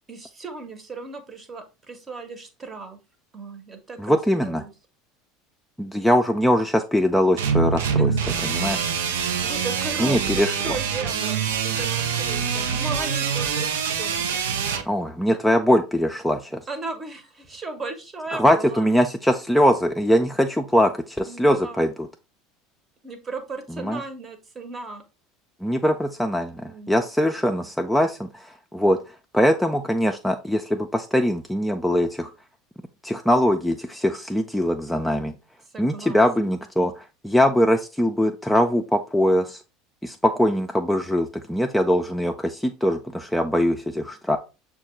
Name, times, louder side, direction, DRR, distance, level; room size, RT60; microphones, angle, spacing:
voice 1, 0.1-3.0 3.3-4.7 8.0-8.7 9.4-14.3 16.7-18.9 21.3-21.9 23.0-25.0 26.6-27.1 35.7-36.5, right 3 dB, 30° right, 8 dB, 0.9 m, -36 dB
voice 2, 4.0-4.6 5.8-8.1 8.4-8.9 10.0-10.7 14.9-16.6 18.3-22.1 23.8-24.0 25.6-29.0 29.3-32.3 33.0-35.3 35.8-39.6 40.0-44.4, equal, 5° left, 4 dB, 0.4 m, -22 dB
sound 1, 7.4-14.8, right 6 dB, 75° right, 0.4 m, -25 dB
6.2 x 2.3 x 3.0 m, 0.30 s
hypercardioid pair, 75°, 0 cm